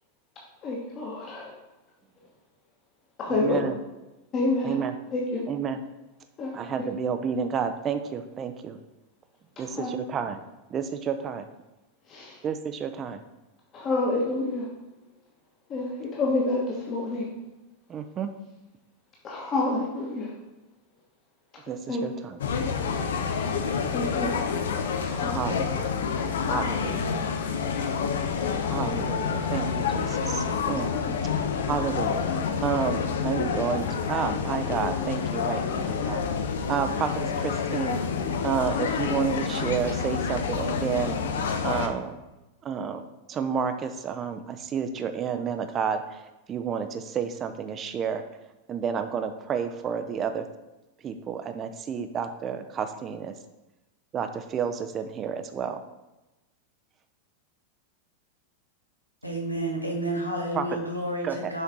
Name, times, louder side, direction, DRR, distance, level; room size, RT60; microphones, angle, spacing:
voice 1, 0.6-1.5 3.2-3.6 4.3-4.7 5.1-5.4 6.4-6.5 9.7-9.9 12.1-12.4 13.7-14.7 15.7-17.3 19.2-20.3 21.9-22.2 23.9-24.5 25.0-25.4, left 2 dB, 30° left, -2 dB, 1.2 m, -28 dB
voice 2, 3.3-3.7 4.6-4.9 5.5-5.8 6.5-8.8 9.6-10.4 10.7-11.4 12.4-13.2 17.9-18.3 21.7-22.4 25.3-25.9 26.4-27.1 28.7-30.9 31.7-32.2 32.6-36.2 36.7-38.0 38.4-42.1 42.6-46.2 46.5-48.2 48.7-50.5 51.0-53.3 54.1-55.8 60.5-60.6 61.2-61.5, right 7 dB, 25° right, 8 dB, 0.5 m, -30 dB
sound 1, 22.4-41.9, left 6 dB, 60° left, 0.6 m, -28 dB
voice 3, 59.2-61.6, right 1 dB, 90° left, -1 dB, 1.3 m, -30 dB
6.7 x 4.5 x 3.8 m, 1.0 s
figure-of-eight pair, 90°, 0 cm